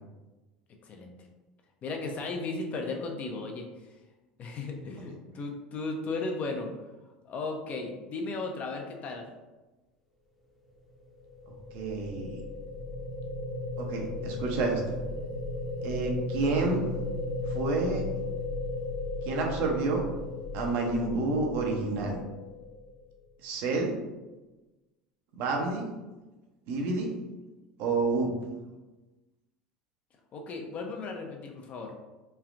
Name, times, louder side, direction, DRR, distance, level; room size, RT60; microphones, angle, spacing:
voice 1, 1.8-3.7 4.4-6.7 7.3-9.3 30.3-31.9, left 3 dB, 40° left, 3 dB, 0.6 m, -35 dB
sound 1, 11.0-23.2, left 2 dB, 5° left, 0.7 m, -35 dB
voice 2, 11.7-12.4 13.8-15.0 15.8-16.8 17.5-18.0 19.2-20.0 20.5-22.2 23.4-23.9 25.4-25.9 26.7-27.1 27.8-28.3, right 3 dB, 60° right, 1 dB, 0.6 m, -29 dB
3.2 x 2.4 x 2.5 m, 1.1 s
hypercardioid pair, 85°, 4 cm